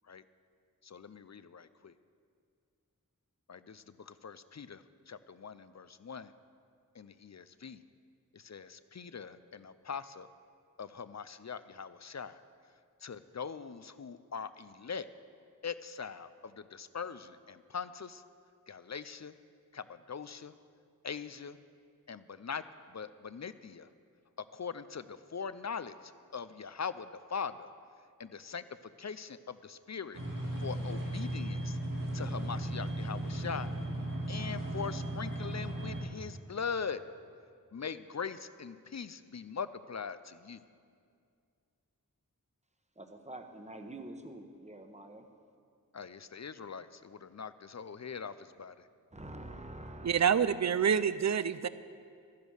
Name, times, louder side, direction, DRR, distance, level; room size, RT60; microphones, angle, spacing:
voice 1, 0.8-1.9 3.5-6.3 6.9-7.8 8.3-10.3 10.8-12.4 13.0-15.1 15.6-18.2 18.7-19.3 19.7-20.5 21.0-21.6 22.1-23.9 24.4-27.7 28.2-28.6 29.0-30.2 30.6-31.8 32.1-33.7 34.3-37.0 37.7-40.6 45.9-48.9, left 6 dB, 55° left, 14 dB, 0.5 m, -42 dB
sound 1, 30.1-36.0, right 1 dB, 70° right, 2.5 m, -36 dB
voice 2, 43.0-45.3 49.1-50.2, right 1 dB, 20° right, 5 dB, 1.1 m, -46 dB
voice 3, 50.0-51.7, right 7 dB, 55° right, 15 dB, 0.5 m, -27 dB
13.0 x 10.5 x 6.3 m, 2.3 s
wide cardioid pair, 50°, 34 cm